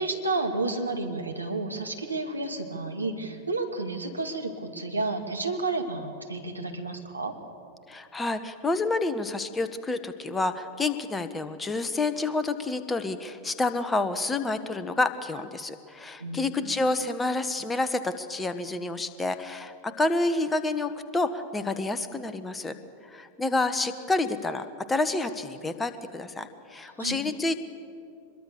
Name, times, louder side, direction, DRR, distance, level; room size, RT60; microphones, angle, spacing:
voice 1, 0.0-7.4 16.2-16.7 27.0-27.2, right 3 dB, 85° right, 3 dB, 2.2 m, -31 dB
voice 2, 7.9-22.7 23.1-27.6, left 2 dB, 10° left, 11 dB, 1.2 m, -29 dB
24.5 x 21.5 x 6.9 m, 2.4 s
figure-of-eight pair, 90°, 0 cm